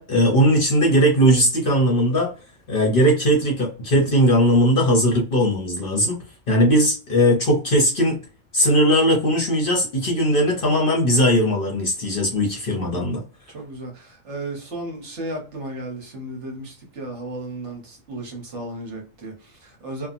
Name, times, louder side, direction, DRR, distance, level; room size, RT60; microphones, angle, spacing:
voice 1, 0.0-2.3 2.7-6.2 6.5-8.2 8.5-13.2, equal, 50° left, 0.8 m, -19 dB
voice 2, 13.5-20.1, right 1 dB, 60° right, 1.2 m, -34 dB
2.8 x 2.3 x 2.4 m
omnidirectional pair, 1.4 m